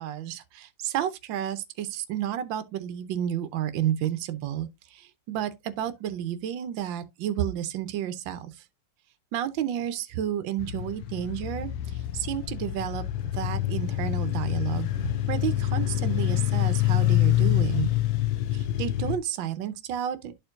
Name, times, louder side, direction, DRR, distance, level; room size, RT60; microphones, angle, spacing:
voice 1, 0.0-8.6 9.3-13.0 13.3-17.9 18.5-20.3, right 10 dB, 80° right, 1.5 m, -31 dB
sound 1, 10.6-19.2, left 14 dB, 90° left, 1.5 m, -26 dB
12.0 x 4.4 x 2.5 m
omnidirectional pair, 2.0 m